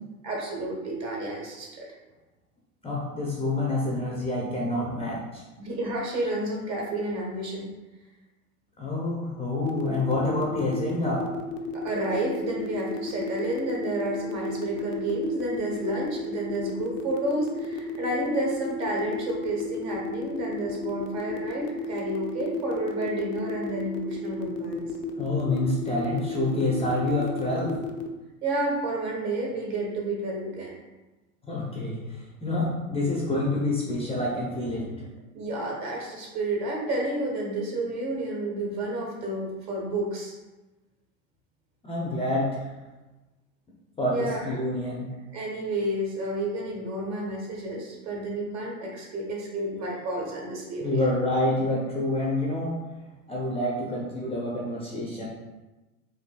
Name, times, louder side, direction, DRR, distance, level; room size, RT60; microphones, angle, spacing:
voice 1, 0.2-1.9 5.6-7.7 11.7-24.9 28.4-30.7 35.3-40.3 44.1-44.6 45.3-51.1, right 1 dB, 40° right, -2 dB, 1.2 m, -30 dB
voice 2, 2.8-5.4 8.8-11.3 25.2-27.8 31.5-34.9 41.8-42.7 44.0-45.1 50.8-52.7 53.3-55.2, left 2 dB, 15° left, -4 dB, 0.6 m, -27 dB
sound 1, 9.6-28.1, left 6 dB, 60° left, 0.6 m, -33 dB
4.2 x 2.6 x 2.2 m, 1.1 s
hypercardioid pair, 95°, 42 cm